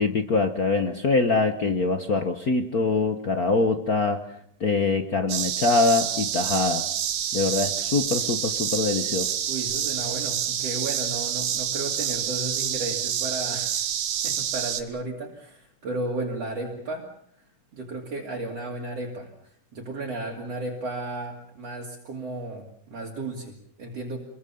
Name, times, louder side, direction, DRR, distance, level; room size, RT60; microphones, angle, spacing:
voice 1, 0.0-4.2 4.6-6.9 7.3-9.3, left 3 dB, 60° left, 7 dB, 0.9 m, -24 dB
sound 1, 5.3-14.8, right 9 dB, 65° right, 2.7 m, -28 dB
voice 2, 9.5-13.9 14.2-17.1 17.7-24.2, right 2 dB, 50° right, -1 dB, 3.6 m, -34 dB
27.0 x 22.0 x 7.1 m, 0.65 s
omnidirectional pair, 3.6 m